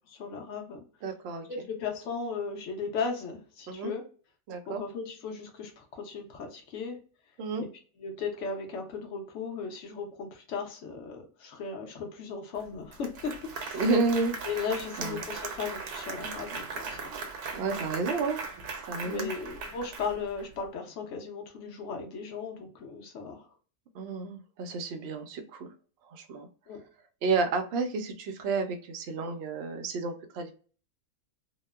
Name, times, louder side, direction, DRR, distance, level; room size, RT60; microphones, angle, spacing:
voice 1, 0.1-0.8 1.5-4.0 4.7-7.0 7.6-7.7 8.0-13.8 14.5-17.1 19.0-23.5 26.7-26.8, left 5 dB, 60° left, 3 dB, 0.9 m, -36 dB
voice 2, 1.0-1.4 3.7-3.9 4.5-4.8 7.4-7.7 13.7-14.3 15.0-15.2 17.1-17.2 17.5-18.4 18.9-19.3 23.9-25.7 26.1-26.5 27.2-30.5, right 4 dB, 70° right, 5 dB, 0.6 m, -31 dB
Applause, 12.6-12.7 12.9-20.5, right 4 dB, 85° right, 1.2 m, -38 dB
2.9 x 2.0 x 2.2 m, 0.39 s
omnidirectional pair, 1.6 m